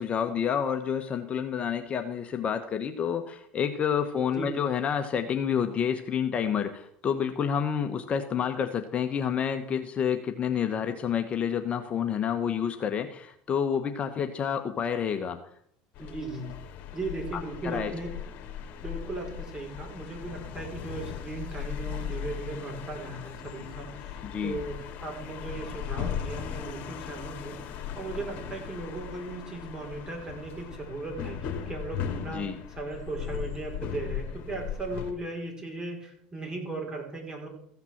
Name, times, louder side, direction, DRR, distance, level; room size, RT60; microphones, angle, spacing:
voice 1, 0.0-15.4 17.3-17.9 24.2-24.6 32.3-32.6, left 7 dB, 35° left, 6 dB, 1.2 m, -29 dB
sound 1, 16.0-35.1, left 8 dB, 55° left, 2.2 m, -38 dB
voice 2, 16.0-16.5 16.9-18.1 18.8-32.5 32.8-37.5, right 2 dB, 25° right, 1 dB, 4.7 m, -37 dB
15.0 x 5.9 x 7.2 m, 0.67 s
supercardioid pair, 100°, 4 cm